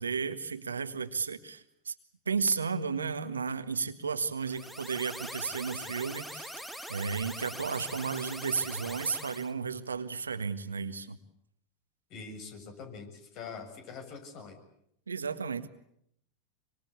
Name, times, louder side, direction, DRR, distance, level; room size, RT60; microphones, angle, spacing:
voice 1, 0.0-1.9 2.2-6.5 6.9-11.2 15.1-15.7, right 5 dB, 85° right, 10 dB, 1.6 m, -33 dB
sound 1, 4.4-9.5, equal, 5° left, 2.3 m, -42 dB
voice 2, 12.1-14.6, left 5 dB, 50° left, 7 dB, 6.9 m, -44 dB
25.0 x 24.5 x 8.4 m, 0.73 s
hypercardioid pair, 90°, 0 cm